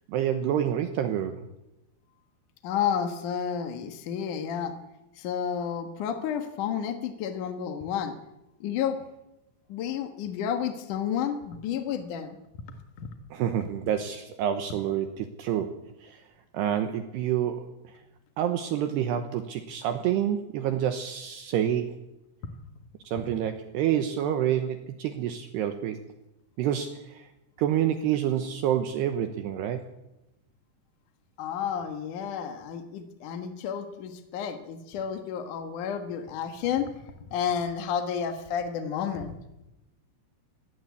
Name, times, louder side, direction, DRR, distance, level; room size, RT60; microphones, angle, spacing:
voice 1, 0.1-1.4 13.3-16.2 16.5-17.7 18.4-22.0 23.0-26.0 26.6-27.3 27.6-29.8, right 10 dB, 75° right, 8 dB, 2.6 m, -28 dB
voice 2, 2.6-4.7 5.2-8.1 8.6-9.0 9.7-12.4 13.0-13.1 31.4-36.9 37.3-39.4, left 8 dB, 70° left, 7 dB, 2.0 m, -31 dB
21.0 x 16.0 x 8.5 m, 0.93 s
omnidirectional pair, 5.9 m